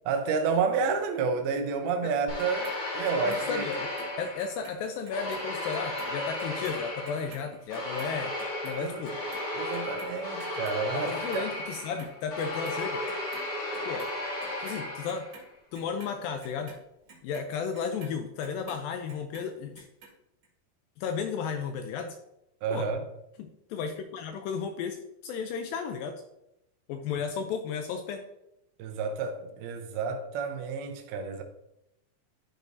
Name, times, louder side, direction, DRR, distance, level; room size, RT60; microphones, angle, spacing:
voice 1, 0.1-3.7 8.8-9.2 9.5-11.4 22.6-23.0 28.8-31.4, right 5 dB, 75° right, 2.5 m, -30 dB
sound 1, 2.3-4.7 5.1-15.4, left 1 dB, 40° left, 2.4 m, -35 dB
Clock, 2.4-4.8 5.1-11.5 11.7-12.8 13.1-14.1 14.4-18.8 19.1-20.1 20.4-20.5, right 3 dB, 45° right, 2.5 m, -50 dB
voice 2, 3.2-3.9 4.2-8.3 8.6-9.2 10.9-13.0 13.9-14.1 14.6-15.3 15.7-16.7 17.2-19.9 21.0-22.2 22.7-22.9 23.4-26.2 26.9-28.2, left 6 dB, 85° left, 2.0 m, -34 dB
12.0 x 5.0 x 2.6 m
omnidirectional pair, 4.7 m